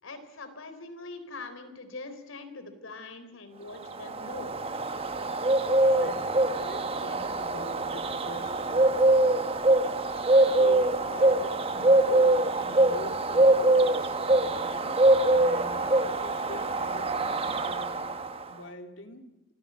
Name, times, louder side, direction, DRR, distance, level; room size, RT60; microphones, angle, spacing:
voice 1, 0.0-4.6, left 3 dB, 85° left, 9 dB, 3.8 m, -42 dB
Bird, 3.8-18.5, right 2 dB, 30° right, 1.2 m, -24 dB
voice 2, 6.0-9.1 10.3-15.0 15.3-17.1 17.5-18.2 18.5-19.3, left 1 dB, 70° left, 5 dB, 2.8 m, -44 dB
27.0 x 17.0 x 8.2 m, 0.96 s
head